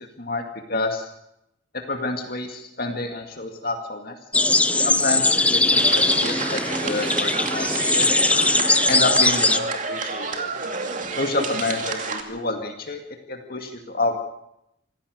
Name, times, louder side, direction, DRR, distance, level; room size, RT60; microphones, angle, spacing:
voice 1, 0.7-1.1 1.9-4.2 4.8-8.3 8.9-10.5 11.2-13.0 13.3-14.2, left 2 dB, 50° left, 3 dB, 2.1 m, -28 dB
sound 1, 4.3-9.6, left 2 dB, 5° left, 0.7 m, -20 dB
sound 2, 5.8-12.2, right 4 dB, 40° right, 2.5 m, -29 dB
26.5 x 16.0 x 6.6 m, 0.80 s
head